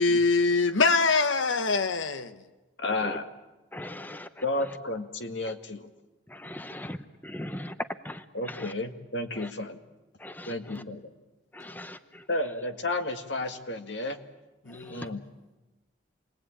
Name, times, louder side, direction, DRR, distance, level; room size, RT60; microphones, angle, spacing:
voice 1, 0.0-2.3 10.7-10.9 14.7-15.0, left 3 dB, 90° left, 1.1 m, -24 dB
voice 2, 2.8-3.3 4.4-5.9 8.3-9.8 10.5-11.0 12.3-14.2 14.9-15.2, left 2 dB, 70° left, 1.9 m, -32 dB
voice 3, 3.7-4.3 6.3-7.0 7.2-7.7 8.0-8.7 9.4-9.5 10.2-10.5 11.5-12.0 14.9-15.0, left 1 dB, 10° left, 0.8 m, -39 dB
28.5 x 21.5 x 8.7 m
head